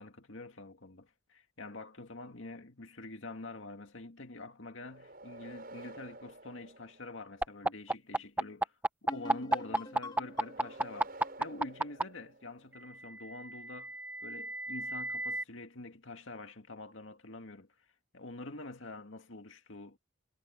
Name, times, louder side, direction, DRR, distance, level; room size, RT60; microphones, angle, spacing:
voice 1, 0.0-14.0 14.2-17.7 18.1-20.0, left 2 dB, 75° left, 2.1 m, -46 dB
sound 1, 4.8-7.6 10.2-12.9, right 2 dB, 50° right, 7.5 m, -51 dB
sound 2, 7.4-12.0 13.2-15.4, right 2 dB, 10° right, 0.9 m, -31 dB
sound 3, 9.1-12.7, left 1 dB, 20° left, 1.7 m, -48 dB
head